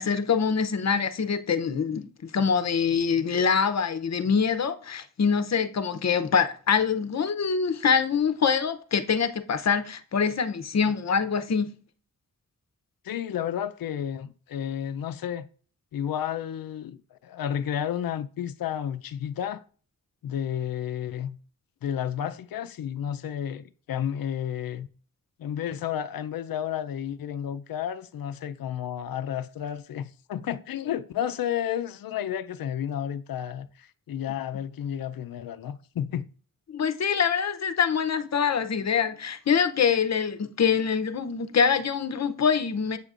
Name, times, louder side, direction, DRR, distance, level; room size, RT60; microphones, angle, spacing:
voice 1, 0.0-11.7 36.7-43.0, left 6 dB, 50° left, 0.7 m, -24 dB
voice 2, 13.0-15.5 15.9-19.6 20.2-21.4 21.8-24.9 25.4-36.3, left 9 dB, 90° left, 0.5 m, -31 dB
8.2 x 6.6 x 2.4 m
wide cardioid pair, 120°, 34 cm